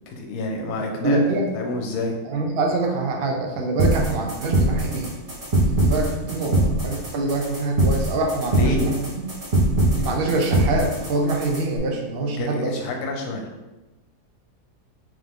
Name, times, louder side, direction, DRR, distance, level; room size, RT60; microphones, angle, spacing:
voice 1, 0.1-2.2 8.4-9.0 12.3-13.4, left 2 dB, 75° left, 1 dB, 1.2 m, -28 dB
voice 2, 1.0-1.5 2.3-5.1 5.8-9.1 9.9-12.7, right 2 dB, 75° right, 1 dB, 0.5 m, -25 dB
sound 1, 3.8-11.8, right 1 dB, 30° right, 0.7 m, -22 dB
3.6 x 3.2 x 3.5 m, 1.1 s
omnidirectional pair, 1.7 m